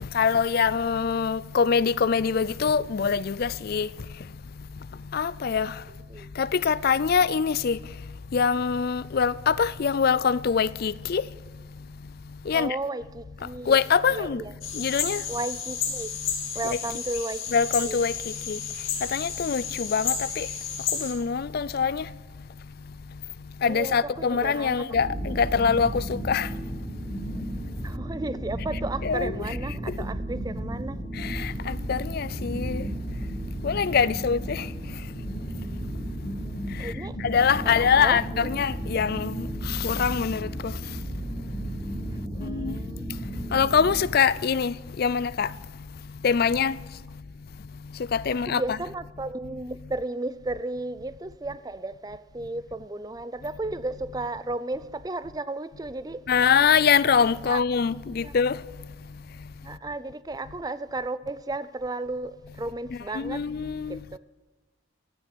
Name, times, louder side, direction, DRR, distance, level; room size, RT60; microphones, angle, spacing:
voice 1, 0.1-3.9 5.1-5.7 6.4-7.8 8.3-11.2 12.5-12.8 13.7-14.4 14.8-15.2 16.7-16.8 17.5-18.1 18.5-18.6 19.1-20.5 21.0-22.0 23.6-26.5 29.0-29.4 31.2-32.8 33.6-34.6 37.2-40.7 42.4-42.7 43.5-45.5 46.2-46.7 48.1-48.6 56.3-58.6 63.1-64.0, left 6 dB, 45° left, 0.4 m, -24 dB
voice 2, 12.5-13.8 14.1-14.5 15.3-16.1 16.5-18.0 23.6-24.9 27.8-31.0 36.8-37.2 37.6-38.7 42.3-43.0 48.5-56.2 57.5-57.6 58.2-58.3 59.6-63.5 63.9-64.2, right 2 dB, 20° right, 0.4 m, -34 dB
sound 1, 14.6-21.1, left 7 dB, 70° left, 2.7 m, -32 dB
sound 2, 24.9-44.0, right 1 dB, 20° left, 5.0 m, -34 dB
15.5 x 7.4 x 9.6 m
head